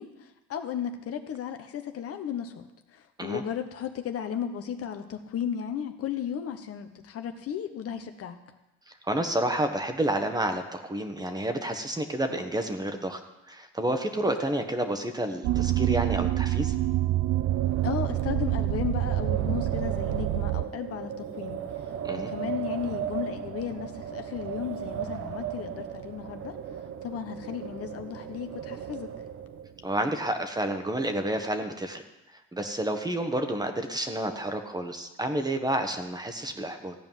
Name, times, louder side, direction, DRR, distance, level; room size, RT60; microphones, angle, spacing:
voice 1, 0.0-2.7 2.9-8.4 17.8-21.6 22.1-26.5 27.0-29.1, left 8 dB, 50° left, 7 dB, 1.2 m, -34 dB
voice 2, 8.9-13.2 13.5-16.7 22.0-22.3 29.8-32.0 32.3-36.9, right 1 dB, 15° right, 6 dB, 1.3 m, -30 dB
sound 1, 15.4-20.6, right 15 dB, 65° right, 0.5 m, -26 dB
Wind, 17.2-29.8, right 9 dB, 50° right, 0.9 m, -37 dB
15.5 x 5.2 x 9.2 m, 0.97 s
supercardioid pair, 90°, 30 cm